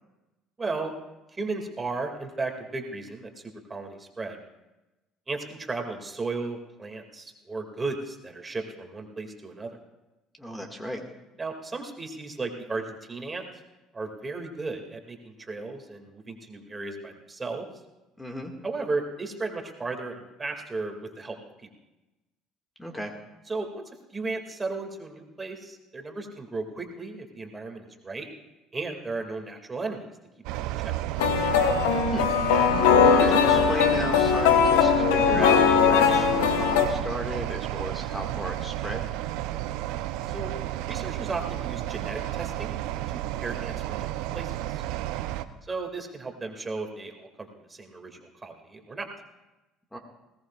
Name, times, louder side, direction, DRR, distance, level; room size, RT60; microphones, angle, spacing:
voice 1, 0.6-0.9 1.3-4.4 5.3-9.8 11.4-13.4 13.9-17.7 18.6-21.4 23.5-23.8 24.1-28.3 28.7-30.1 30.5-30.7 40.3-40.5 40.9-42.7 43.4-44.8 45.6-49.1, right 3 dB, 25° right, 3 dB, 2.3 m, -35 dB
voice 2, 10.4-11.0 18.2-18.5 22.8-23.1 32.1-32.3 33.0-39.0 49.9-50.0, equal, 10° left, 2 dB, 1.9 m, -34 dB
sound 1, 30.4-45.4, right 14 dB, 70° right, 0.6 m, -32 dB
sound 2, 31.2-36.9, left 7 dB, 80° left, 1.1 m, -20 dB
20.0 x 17.5 x 2.4 m, 1.0 s
hypercardioid pair, 70°, 0 cm